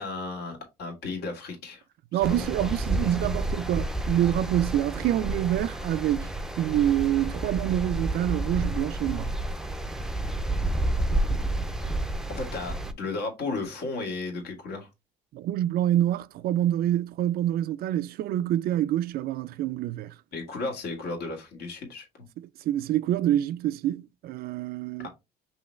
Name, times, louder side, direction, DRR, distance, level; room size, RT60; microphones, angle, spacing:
voice 1, 0.0-1.8 2.1-2.7 12.3-14.9 20.3-22.3 25.0-25.1, left 3 dB, 75° left, 2.0 m, -34 dB
voice 2, 2.1-9.3 15.3-20.1 22.7-25.1, right 12 dB, 65° right, 0.4 m, -26 dB
sound 1, 2.2-12.9, right 1 dB, 5° right, 0.5 m, -30 dB
5.5 x 2.9 x 3.1 m
cardioid pair, 110°, 17 cm